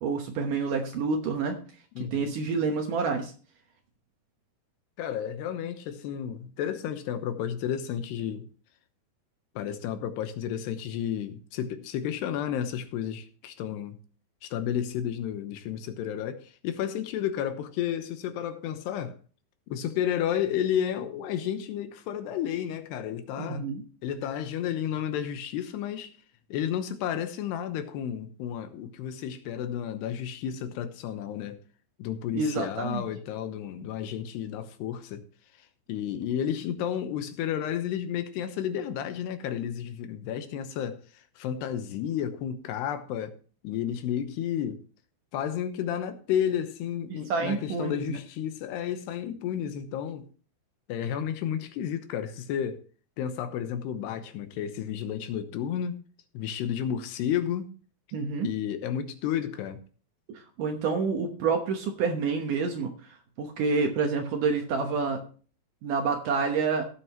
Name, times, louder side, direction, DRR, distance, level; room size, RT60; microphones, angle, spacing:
voice 1, 0.0-1.6 2.0-3.3 23.4-23.8 32.3-33.1 47.1-48.2 58.1-58.5 60.3-65.2 65.8-66.9, right 4 dB, 65° right, 2.2 m, -28 dB
voice 2, 2.0-2.3 5.0-8.5 9.6-14.0 14.4-19.1 19.7-23.7 24.0-26.1 26.5-31.6 32.0-35.2 35.9-41.0 41.4-43.3 43.6-44.8 45.3-50.2 50.9-52.8 53.2-56.0 56.3-57.7 58.4-59.8, left 9 dB, 80° left, 3.1 m, -32 dB
18.0 x 7.7 x 3.0 m
omnidirectional pair, 4.9 m